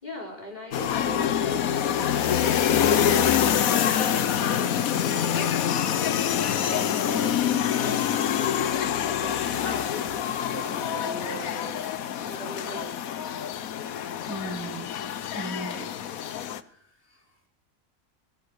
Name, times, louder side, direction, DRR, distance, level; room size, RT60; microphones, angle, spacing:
voice 1, 0.0-1.8 3.6-6.0 6.5-11.8 12.2-13.3, equal, 30° left, 0 dB, 4.6 m, -40 dB
sound 1, 0.7-16.6, left 9 dB, 85° left, 1.3 m, -26 dB
voice 2, 14.3-14.9 15.3-15.9 16.7-16.8 17.1-17.2, right 1 dB, 10° right, 0 dB, 3.1 m, -36 dB
20.0 x 9.6 x 6.4 m, 0.62 s
omnidirectional pair, 1.4 m